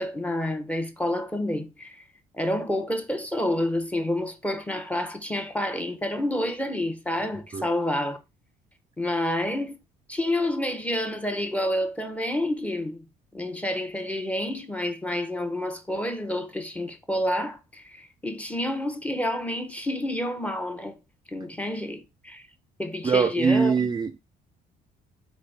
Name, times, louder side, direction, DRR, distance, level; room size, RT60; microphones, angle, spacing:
voice 1, 0.0-2.0 2.3-8.2 9.0-9.8 10.1-13.0 13.3-21.0 21.3-22.5 22.8-23.9, left 1 dB, 10° left, 0.7 m, -29 dB
voice 2, 23.0-24.2, right 5 dB, 25° right, 0.4 m, -22 dB
4.2 x 3.5 x 3.3 m
cardioid pair, 110°, 17 cm